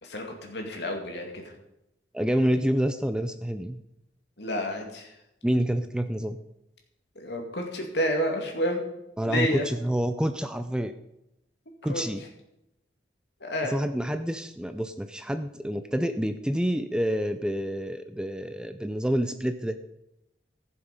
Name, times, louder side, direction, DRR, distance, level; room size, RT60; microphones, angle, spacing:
voice 1, 0.0-1.4 4.4-5.1 7.2-8.8 9.2-9.6 11.8-12.0 13.4-13.7, equal, 65° left, 2 dB, 2.5 m, -30 dB
voice 2, 2.1-3.8 5.4-6.4 9.2-10.9 11.8-12.2 13.6-19.8, equal, 5° right, 9 dB, 0.4 m, -28 dB
15.0 x 7.1 x 5.3 m, 0.87 s
head